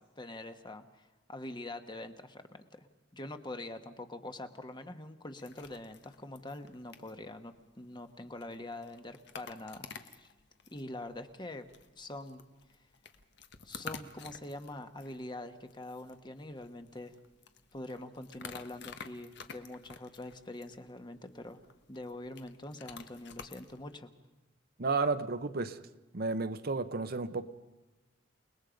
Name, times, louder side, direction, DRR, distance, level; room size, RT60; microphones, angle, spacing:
voice 1, 0.0-2.9 3.1-10.3 10.7-11.7 12.0-12.4 13.6-17.1 17.7-21.6 21.9-24.1, left 1 dB, 25° left, 7 dB, 1.3 m, -44 dB
sound 1, 5.4-24.0, left 5 dB, 65° left, 1.3 m, -52 dB
voice 2, 24.8-25.8 26.1-27.5, right 3 dB, 55° right, 10 dB, 0.9 m, -32 dB
29.0 x 20.0 x 5.2 m, 1.1 s
head